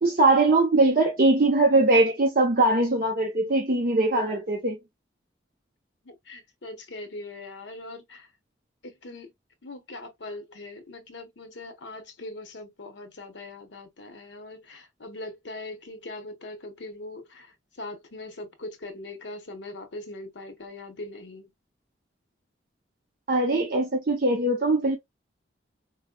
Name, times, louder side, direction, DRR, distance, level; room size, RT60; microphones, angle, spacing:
voice 1, 0.0-4.8 23.3-25.0, right 2 dB, 50° right, 0.7 m, -21 dB
voice 2, 6.0-8.3 8.8-9.3 9.6-21.5, left 2 dB, 85° left, 1.0 m, -41 dB
4.6 x 2.1 x 2.2 m
head